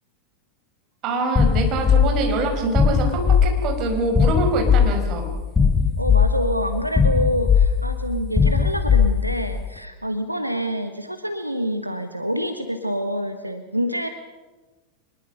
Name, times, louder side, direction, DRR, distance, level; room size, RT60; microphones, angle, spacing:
voice 1, 1.0-5.3, right 2 dB, 35° right, 3 dB, 5.4 m, -24 dB
sound 1, 1.4-9.6, left 6 dB, 15° left, 1.0 m, -19 dB
voice 2, 6.0-14.1, equal, 90° right, 8 dB, 1.4 m, -26 dB
24.0 x 21.0 x 6.8 m, 1.2 s
figure-of-eight pair, 90°, 0 cm